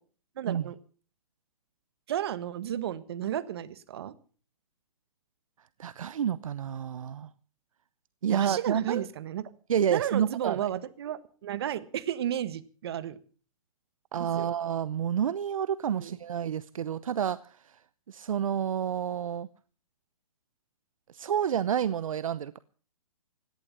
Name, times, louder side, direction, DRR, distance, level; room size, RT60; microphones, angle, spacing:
voice 1, 0.4-0.8 2.1-4.1 8.3-9.5 9.9-13.2 14.2-14.5 15.9-16.2, right 11 dB, 45° right, 1.5 m, -33 dB
voice 2, 5.8-7.3 8.2-9.0 9.7-10.6 14.1-17.8 18.1-19.5 21.1-22.6, right 9 dB, 70° right, 0.8 m, -29 dB
17.0 x 11.0 x 7.3 m
hypercardioid pair, 165°, 18 cm